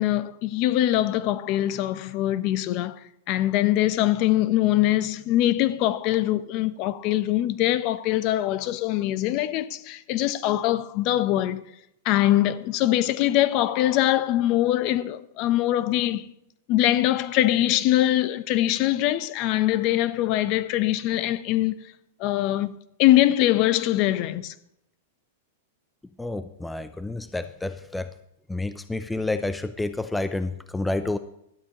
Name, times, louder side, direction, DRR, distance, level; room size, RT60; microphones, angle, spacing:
voice 1, 0.0-3.0 3.3-11.6 12.0-16.3 16.7-21.9 22.2-22.7 23.0-24.5, left 14 dB, 45° left, 0.8 m, -23 dB
voice 2, 26.2-28.1 28.5-31.2, left 2 dB, 5° left, 0.5 m, -29 dB
16.5 x 12.0 x 3.0 m
hypercardioid pair, 140°, 0 cm